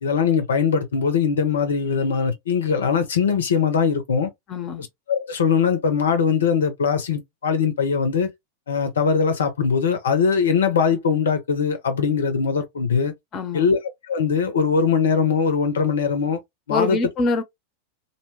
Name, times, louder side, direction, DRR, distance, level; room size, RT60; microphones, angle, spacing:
voice 1, 0.0-4.3 5.1-8.3 8.7-13.1 13.5-13.8 14.1-16.4 16.7-17.0, left 6 dB, 65° left, 0.6 m, -21 dB
voice 2, 4.5-4.9 13.3-13.7 16.7-17.4, left 3 dB, 30° left, 0.7 m, -24 dB
2.6 x 2.1 x 3.0 m
figure-of-eight pair, 90°, 0 cm